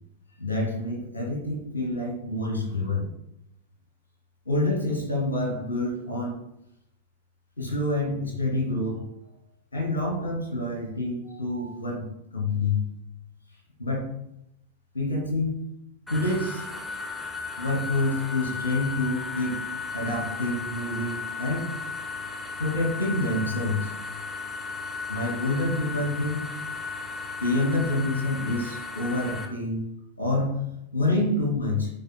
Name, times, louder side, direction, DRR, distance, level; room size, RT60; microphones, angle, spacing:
voice 1, 0.4-3.1 4.5-6.4 7.6-9.0 9.7-12.8 13.8-14.1 14.9-15.6 16.1-16.6 17.6-19.6 19.9-21.8 22.6-23.9 25.1-26.5 27.4-29.9 30.2-30.6 30.9-31.9, left 2 dB, 75° left, -1 dB, 2.5 m, -27 dB
sound 1, 16.1-29.4, left 4 dB, 5° left, 1.2 m, -35 dB
10.5 x 4.7 x 2.2 m, 0.81 s
figure-of-eight pair, 90°, 0 cm